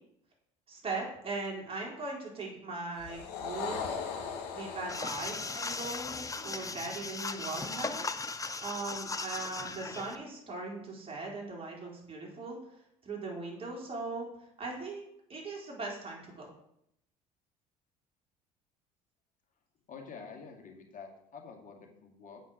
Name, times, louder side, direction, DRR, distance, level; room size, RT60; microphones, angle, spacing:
voice 1, 0.7-3.9 4.5-8.1 8.6-12.6 13.0-14.3 14.6-16.5, right 3 dB, 30° right, -2 dB, 4.1 m, -39 dB
sound 1, 3.0-7.6, left 6 dB, 75° left, 1.9 m, -41 dB
sound 2, 4.9-10.2, left 4 dB, 15° left, 0.7 m, -38 dB
voice 2, 19.9-22.4, left 5 dB, 45° left, 1 dB, 2.3 m, -48 dB
7.6 x 5.5 x 6.6 m, 0.76 s
hypercardioid pair, 65°, 19 cm